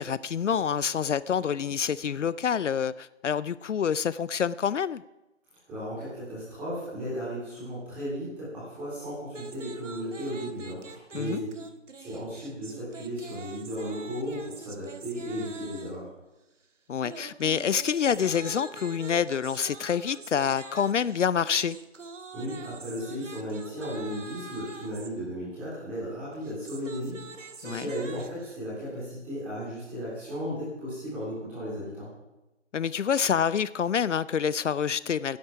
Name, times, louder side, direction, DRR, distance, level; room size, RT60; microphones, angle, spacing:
voice 1, 0.0-5.0 11.1-11.4 16.9-21.8 27.6-27.9 32.7-35.4, left 7 dB, 75° left, 18 dB, 0.6 m, -27 dB
voice 2, 5.7-11.5 12.0-16.1 22.3-32.1, equal, 5° right, -9 dB, 3.4 m, -35 dB
sound 1, 9.3-16.1 17.0-25.1 26.3-28.6, right 4 dB, 80° right, 1.6 m, -45 dB
16.5 x 10.5 x 6.0 m, 0.99 s
hypercardioid pair, 180°, 36 cm